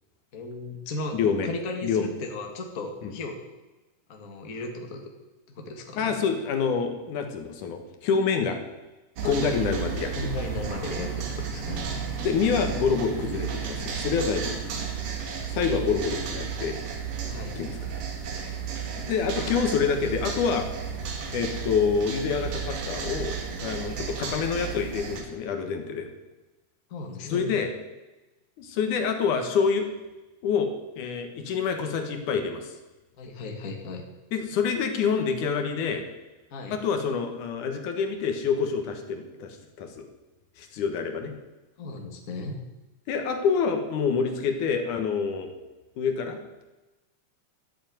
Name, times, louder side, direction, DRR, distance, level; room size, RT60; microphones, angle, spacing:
voice 1, 0.3-1.2 1.4-3.4 4.1-5.1 5.5-6.1 9.2-9.5 10.2-11.9 17.3-17.5 26.9-27.5 33.2-34.0 36.5-36.7 41.8-42.6, left 2 dB, 35° left, 3 dB, 1.7 m, -36 dB
voice 2, 1.1-1.5 1.8-2.1 3.0-3.1 5.9-8.6 9.2-10.3 12.2-14.5 15.5-16.8 17.6-17.8 19.0-20.7 21.3-23.4 23.6-26.1 27.2-27.7 28.6-29.9 30.4-30.7 31.0-32.7 34.3-36.0 36.7-40.1 40.6-41.3 43.1-45.5 46.0-46.4, left 6 dB, 75° left, 5 dB, 2.8 m, -27 dB
sound 1, 9.2-25.2, right 6 dB, 80° right, 3.5 m, -33 dB
13.5 x 7.1 x 9.3 m, 1.1 s
omnidirectional pair, 3.7 m